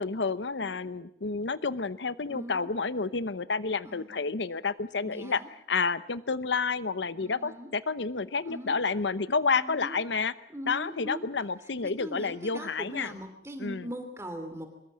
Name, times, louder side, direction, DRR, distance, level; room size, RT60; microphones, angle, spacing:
voice 1, 0.0-5.4 5.7-10.3 10.7-13.1 13.6-13.9, left 4 dB, 85° left, 15 dB, 0.9 m, -30 dB
voice 2, 2.3-2.7 3.8-4.1 5.0-5.5 7.2-7.7 8.4-8.8 9.6-10.0 10.5-11.3 11.8-14.7, equal, 15° right, 6 dB, 2.8 m, -40 dB
25.0 x 21.5 x 7.4 m, 0.74 s
head